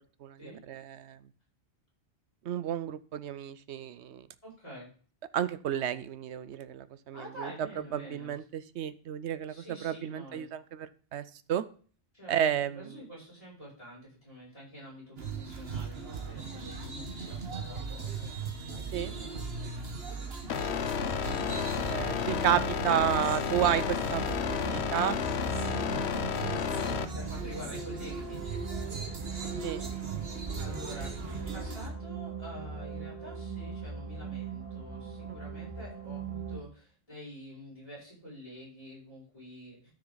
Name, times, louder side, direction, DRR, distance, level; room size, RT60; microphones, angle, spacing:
voice 1, 0.7-1.2 2.4-4.3 5.3-7.5 7.9-10.9 11.1-11.6 12.3-12.8 18.9-19.1 21.9-24.2 24.5-25.2 29.6-29.8, right 10 dB, 85° right, 15 dB, 1.0 m, -31 dB
voice 2, 4.4-4.9 7.1-8.3 9.5-10.5 12.1-12.5 12.7-19.7 20.0-20.3 23.9-24.2 26.8-28.7 30.5-39.9, equal, 30° left, -7 dB, 6.8 m, -47 dB
sound 1, 15.2-31.9, right 4 dB, 65° right, 1.7 m, -39 dB
sound 2, 20.5-27.0, left 7 dB, 75° left, 1.0 m, -32 dB
sound 3, 20.9-36.6, right 6 dB, 30° right, 2.0 m, -41 dB
13.0 x 6.7 x 4.0 m, 0.42 s
omnidirectional pair, 1.1 m